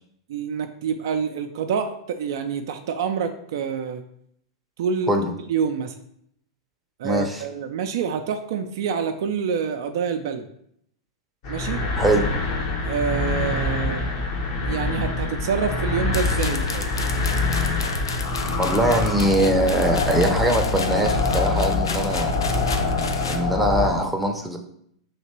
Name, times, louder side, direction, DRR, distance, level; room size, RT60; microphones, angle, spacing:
voice 1, 0.3-4.0 4.8-5.1 5.5-5.9 7.0-10.4 11.5-11.8 12.9-14.1 14.7-16.9, right 6 dB, 60° right, 7 dB, 0.4 m, -27 dB
voice 2, 7.0-7.4 12.0-12.3 18.6-22.3 23.2-24.6, right 1 dB, 5° right, 2 dB, 0.6 m, -22 dB
sound 1, 11.4-23.9, left 3 dB, 50° left, 1.0 m, -25 dB
sound 2, 16.1-23.4, left 4 dB, 75° left, 0.4 m, -34 dB
3.3 x 2.9 x 4.3 m, 0.68 s
figure-of-eight pair, 100°, 2 cm